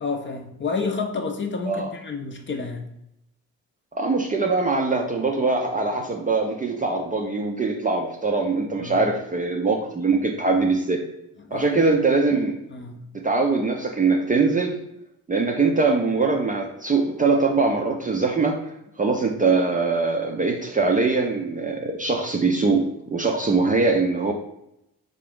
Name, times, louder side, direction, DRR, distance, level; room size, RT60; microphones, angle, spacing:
voice 1, 0.0-2.9 8.8-9.0 11.4-11.9 12.7-13.0, left 4 dB, 30° left, 3 dB, 0.6 m, -30 dB
voice 2, 3.9-11.0 11.5-12.5 13.1-14.8 15.3-18.6 19.0-24.3, right 3 dB, 20° right, 2 dB, 0.5 m, -22 dB
3.6 x 2.5 x 3.5 m, 0.82 s
hypercardioid pair, 40°, 42 cm